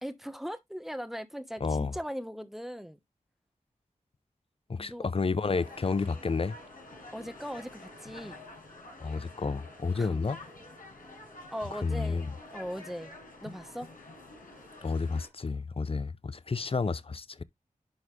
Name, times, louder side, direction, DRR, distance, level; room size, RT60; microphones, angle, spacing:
voice 1, 0.0-3.0 4.8-5.1 7.1-8.4 9.9-10.3 11.5-13.1 13.4-13.9, equal, ahead, 1.1 m, -39 dB
voice 2, 1.6-1.9 4.7-6.6 9.0-10.4 11.7-12.3 14.8-17.4, left 4 dB, 45° left, 0.6 m, -31 dB
sound 1, 5.5-15.3, left 2 dB, 80° left, 5.3 m, -48 dB
11.0 x 4.0 x 3.2 m
wide cardioid pair, 60°, 14 cm